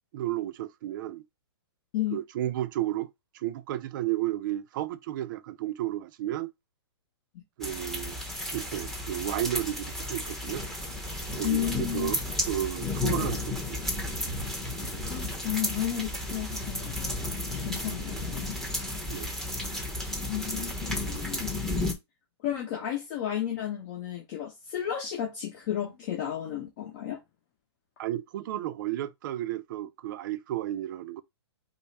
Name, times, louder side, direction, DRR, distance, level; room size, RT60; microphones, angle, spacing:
voice 1, 0.1-1.2 2.1-6.5 7.6-8.2 8.5-10.6 11.3-14.1 19.1-19.3 28.0-31.2, right 13 dB, 45° right, 0.5 m, -33 dB
sound 1, 7.6-21.9, left 1 dB, ahead, 0.9 m, -33 dB
voice 2, 11.4-12.1 15.1-17.2 17.5-18.6 20.3-20.8 21.1-21.6 22.4-27.2, left 11 dB, 45° left, 1.2 m, -33 dB
5.3 x 2.1 x 4.6 m
hypercardioid pair, 140°, 15 cm